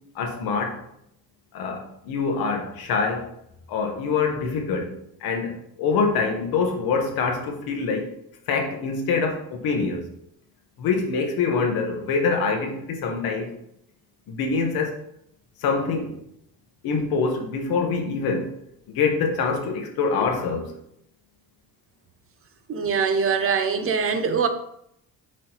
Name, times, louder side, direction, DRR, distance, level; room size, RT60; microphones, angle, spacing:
voice 1, 0.1-0.8 1.5-3.3 3.7-4.9 5.2-8.1 8.5-10.0 10.8-13.5 14.3-15.0 15.6-16.2 16.8-18.5 18.9-20.7, left 4 dB, 90° left, 1.0 m, -25 dB
voice 2, 22.7-24.5, right 6 dB, 40° right, 0.5 m, -23 dB
5.9 x 3.2 x 2.9 m
cardioid pair, 120°, 35 cm